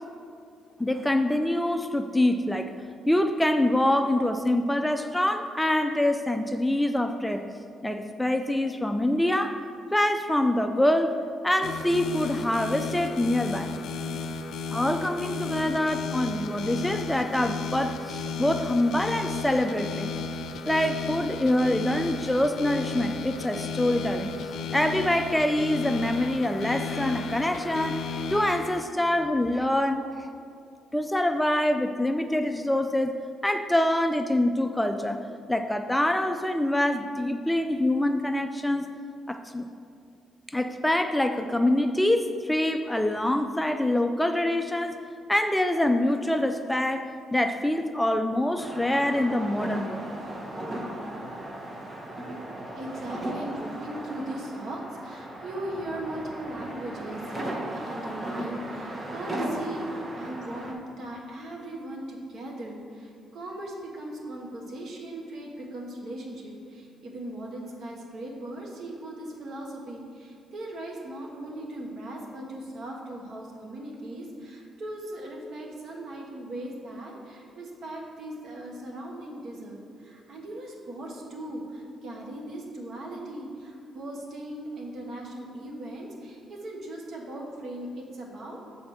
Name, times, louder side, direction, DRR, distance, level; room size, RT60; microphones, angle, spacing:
voice 1, 0.8-2.7 3.1-7.4 7.8-9.6 9.9-11.1 11.4-13.7 14.7-20.1 20.7-24.3 24.7-30.3 30.9-33.1 33.4-38.9 39.3-39.7 40.5-45.0 45.3-50.0, left 1 dB, 5° left, 7 dB, 0.3 m, -25 dB
sound 1, 11.6-28.8, left 4 dB, 75° left, 0.5 m, -34 dB
sound 2, 48.6-60.7, right 1 dB, 35° right, 1.0 m, -36 dB
voice 2, 52.8-88.6, right 1 dB, 65° right, -1 dB, 1.3 m, -38 dB
6.4 x 4.2 x 5.9 m, 2.4 s
cardioid pair, 90°, 0 cm